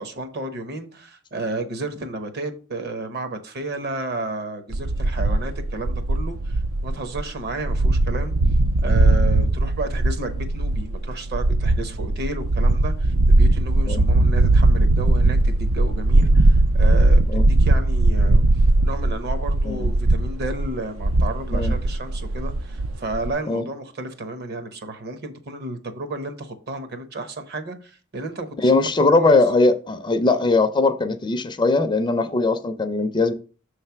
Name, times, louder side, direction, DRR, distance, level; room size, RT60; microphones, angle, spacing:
voice 1, 0.0-8.3 8.8-28.7 29.2-29.4, right 2 dB, 50° right, 0.9 m, -32 dB
sound 1, 4.7-23.3, right 2 dB, 70° right, 0.4 m, -19 dB
voice 2, 28.6-33.3, left 3 dB, 20° left, 0.4 m, -20 dB
6.2 x 3.2 x 5.7 m
head